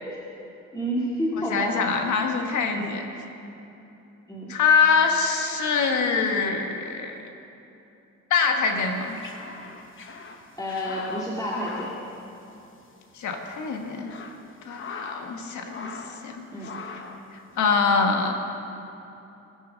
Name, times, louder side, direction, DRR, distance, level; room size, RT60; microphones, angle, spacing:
voice 1, 0.7-1.8 2.7-3.0 4.3-4.5 10.6-11.9 16.5-16.7, equal, 10° left, -6 dB, 2.2 m, -29 dB
voice 2, 1.4-3.0 4.5-7.2 8.3-9.2 13.1-14.1 14.6-16.4 16.9-17.0 17.6-18.3, left 5 dB, 70° left, 4 dB, 1.5 m, -24 dB
sound 1, 8.8-12.9 13.2-13.3 13.8-15.4 15.7-16.3 16.6-17.3, left 4 dB, 40° left, 1.1 m, -41 dB
19.0 x 6.6 x 5.2 m, 2.9 s
cardioid pair, 90°, 30 cm